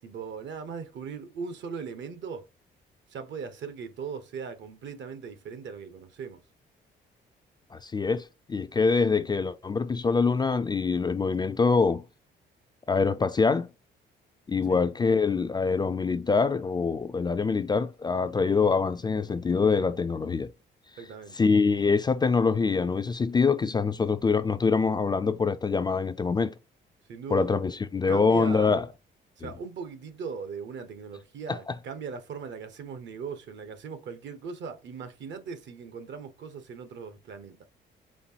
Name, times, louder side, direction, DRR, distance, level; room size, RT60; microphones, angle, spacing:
voice 1, 0.0-2.5 3.1-6.4 14.7-14.8 21.0-21.4 27.1-27.5 28.1-28.7 29.4-37.6, right 5 dB, 65° right, 0.9 m, -39 dB
voice 2, 7.7-12.0 12.9-13.7 14.5-20.5 21.3-26.6 27.3-28.9 29.4-29.5 31.5-31.7, left 4 dB, 20° left, 0.3 m, -25 dB
4.3 x 3.4 x 2.8 m
cardioid pair, 90°, 20 cm